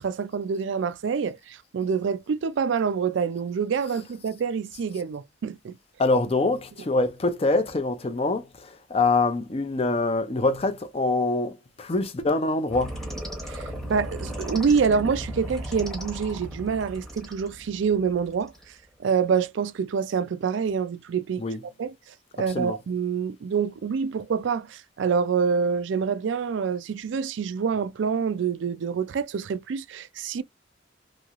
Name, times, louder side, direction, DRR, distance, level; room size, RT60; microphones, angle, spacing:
voice 1, 0.0-5.8 13.5-18.5 19.0-21.4 21.8-21.9 22.4-30.4, right 6 dB, 70° right, 0.4 m, -26 dB
voice 2, 6.0-13.0 21.4-21.6 22.5-22.8, left 3 dB, 30° left, 0.5 m, -25 dB
sound 1, 12.7-18.7, equal, ahead, 0.8 m, -36 dB
3.1 x 2.7 x 2.4 m
head